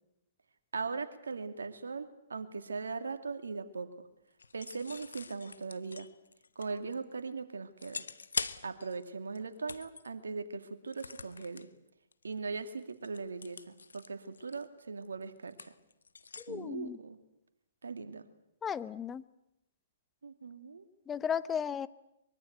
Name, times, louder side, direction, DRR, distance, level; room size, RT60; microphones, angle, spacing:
voice 1, 0.7-3.9 4.5-6.1 6.6-8.0 8.6-11.7 12.2-15.7 16.5-17.2 17.8-18.2 20.2-20.9, right 4 dB, 80° right, 8 dB, 2.5 m, -39 dB
sound 1, 4.4-7.2 7.8-9.1 9.4-10.1 10.9-11.7 12.1-12.3 12.6-16.5, left 4 dB, 80° left, 1.2 m, -43 dB
voice 2, 16.4-17.0 18.6-19.2 21.1-21.9, left 7 dB, 15° left, 16 dB, 0.9 m, -35 dB
24.0 x 23.5 x 8.1 m, 0.85 s
hypercardioid pair, 125°, 0 cm